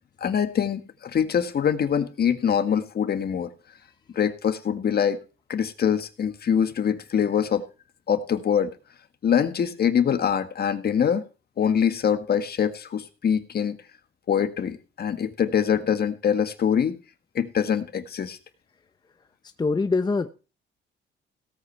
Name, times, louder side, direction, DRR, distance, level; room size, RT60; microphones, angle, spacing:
voice 1, 0.2-3.5 4.1-5.2 5.5-7.7 8.1-8.7 9.2-11.2 11.6-13.8 14.3-17.0 17.3-18.4, left 8 dB, 55° left, 9 dB, 1.7 m, -24 dB
voice 2, 19.6-20.3, left 3 dB, 20° left, 9 dB, 0.9 m, -23 dB
17.0 x 8.3 x 4.6 m, 0.33 s
cardioid pair, 90°, 20 cm